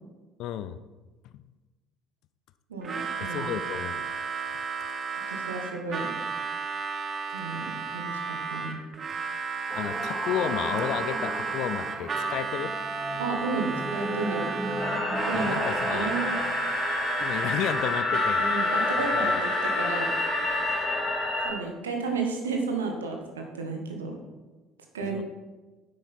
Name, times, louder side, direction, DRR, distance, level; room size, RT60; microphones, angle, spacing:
voice 1, 0.4-0.8 3.2-4.1 9.7-12.7 15.3-16.1 17.2-18.4 19.0-19.4 25.0-25.2, left 10 dB, 55° left, 13 dB, 0.4 m, -32 dB
voice 2, 2.7-3.5 5.3-6.1 7.3-8.8 13.2-14.5 15.2-16.3 18.4-20.1 21.4-24.2 24.9-25.2, right 4 dB, 80° right, 2 dB, 1.5 m, -32 dB
Harmonica, 2.8-21.1, right 5 dB, 35° right, 1.1 m, -33 dB
sound 1, 9.7-16.5, right 1 dB, 10° right, 1.0 m, -35 dB
sound 2, 14.8-21.5, left 3 dB, 35° left, 3.2 m, -28 dB
9.8 x 8.1 x 4.5 m, 1.2 s
figure-of-eight pair, 55°, 0 cm